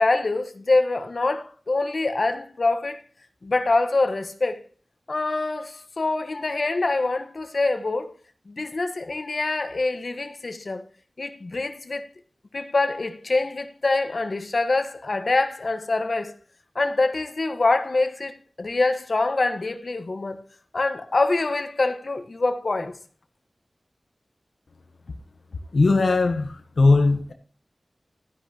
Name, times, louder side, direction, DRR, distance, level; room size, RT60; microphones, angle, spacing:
voice 1, 0.0-3.0 3.4-4.6 5.1-8.1 8.5-10.8 11.2-12.1 12.5-16.3 16.7-20.4 20.7-23.0, left 3 dB, 65° left, 1.2 m, -25 dB
voice 2, 25.7-27.3, left 3 dB, 85° left, 0.9 m, -19 dB
13.0 x 10.0 x 2.9 m
wide cardioid pair, 75°, 0 cm